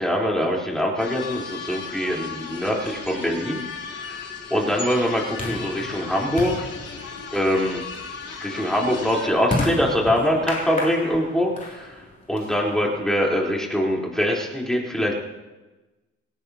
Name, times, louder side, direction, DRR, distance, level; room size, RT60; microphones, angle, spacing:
voice 1, 0.0-3.7 4.0-4.2 4.5-6.7 7.3-7.8 8.4-11.9 12.3-15.1, equal, ahead, -3 dB, 3.9 m, -23 dB
sound 1, 1.0-9.3, left 5 dB, 50° left, 3.5 m, -35 dB
sound 2, 2.7-13.1, left 2 dB, 25° left, 3.3 m, -34 dB
19.5 x 17.5 x 2.9 m, 1.1 s
cardioid pair, 90°, 30 cm